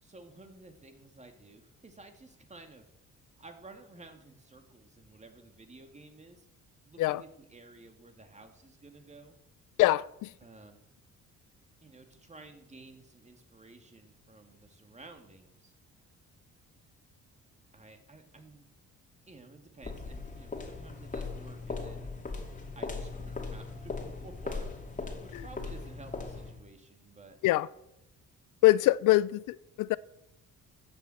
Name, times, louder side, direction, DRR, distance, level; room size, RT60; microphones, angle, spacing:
voice 1, 0.0-2.9 3.4-6.5 6.8-9.4 10.4-10.8 11.8-15.7 17.7-18.7 19.3-22.1 22.7-27.4, right 2 dB, 25° right, 2.2 m, -53 dB
voice 2, 9.8-10.3 25.3-25.4 27.4-27.7 28.6-30.0, left 17 dB, 85° left, 0.5 m, -24 dB
sound 1, 19.8-26.7, left 3 dB, 25° left, 2.6 m, -39 dB
14.5 x 7.2 x 7.7 m
cardioid pair, 90°, 30 cm